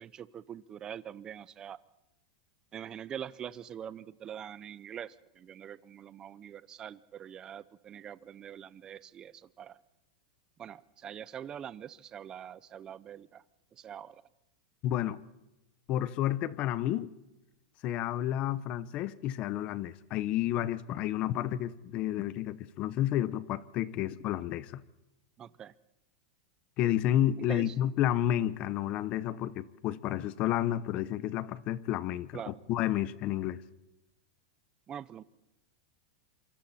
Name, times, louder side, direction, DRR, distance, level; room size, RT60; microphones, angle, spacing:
voice 1, 0.0-1.8 2.7-9.8 10.6-13.4 13.7-14.2 25.4-25.7 27.5-27.8 32.3-32.6 34.9-35.2, right 9 dB, 20° right, 0.7 m, -44 dB
voice 2, 14.8-15.2 15.9-17.1 17.8-24.8 26.8-33.6, left 12 dB, 35° left, 1.0 m, -31 dB
27.0 x 25.0 x 4.3 m
supercardioid pair, 160°, 4 cm